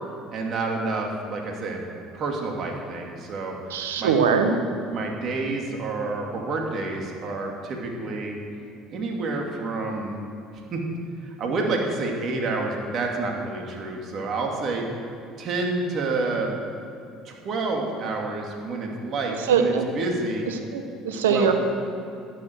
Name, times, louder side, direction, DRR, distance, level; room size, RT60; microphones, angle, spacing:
voice 1, 0.3-1.8 2.1-3.6 4.0-4.1 4.9-8.4 8.9-10.2 10.7-10.8 11.2-14.9 15.4-16.5 17.2-20.5 21.1-21.5, right 3 dB, 50° right, 0 dB, 2.8 m, -28 dB
voice 2, 3.7-4.6 19.5-19.8 20.7-21.5, right 6 dB, 90° right, 6 dB, 1.3 m, -21 dB
15.0 x 11.0 x 4.8 m, 2.7 s
hypercardioid pair, 70°, 0 cm